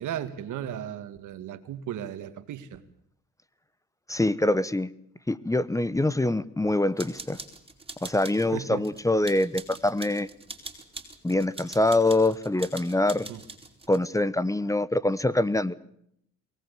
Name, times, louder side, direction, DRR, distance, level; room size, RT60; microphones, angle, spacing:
voice 1, 0.0-2.8 8.5-8.8 13.3-13.4, right 10 dB, 80° right, 11 dB, 2.1 m, -35 dB
voice 2, 4.1-4.9 5.3-7.4 8.0-10.3 11.2-13.3 13.9-15.7, left 2 dB, 10° left, 17 dB, 1.0 m, -24 dB
sound 1, 7.0-8.5 8.8-14.0, right 3 dB, 20° right, 4.7 m, -43 dB
23.5 x 18.0 x 8.4 m, 0.71 s
cardioid pair, 90°, 30 cm